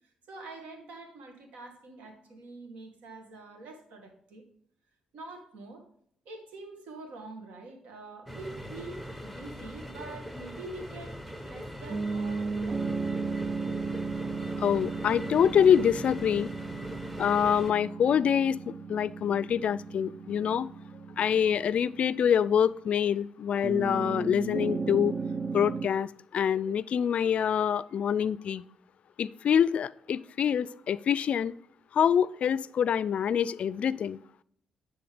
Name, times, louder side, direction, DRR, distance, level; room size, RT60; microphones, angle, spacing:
voice 1, 0.3-4.4 5.1-5.9 6.3-11.2 11.4-12.8, right 2 dB, 80° right, 3 dB, 1.8 m, -45 dB
sound 1, 8.3-17.7, equal, 5° right, 1.0 m, -41 dB
sound 2, 11.9-22.6 23.6-25.9, right 4 dB, 45° right, 0.5 m, -35 dB
voice 2, 14.6-16.5 17.2-20.7 21.2-25.1 25.5-28.6 29.2-31.5 31.9-34.2, left 8 dB, 65° left, 19 dB, 0.3 m, -26 dB
9.9 x 3.5 x 5.0 m, 0.64 s
supercardioid pair, 60°, 2 cm